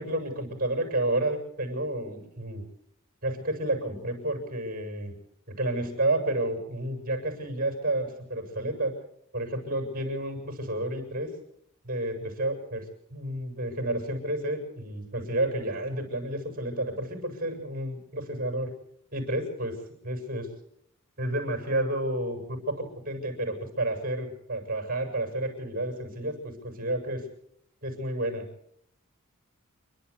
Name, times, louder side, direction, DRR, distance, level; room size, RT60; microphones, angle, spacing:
voice 1, 0.0-2.6 3.2-5.2 5.5-8.9 9.3-11.3 11.8-18.7 19.1-19.8 20.0-20.5 21.2-27.2 27.8-28.5, right 1 dB, 40° right, 4 dB, 6.9 m, -30 dB
28.5 x 12.0 x 8.4 m, 0.72 s
head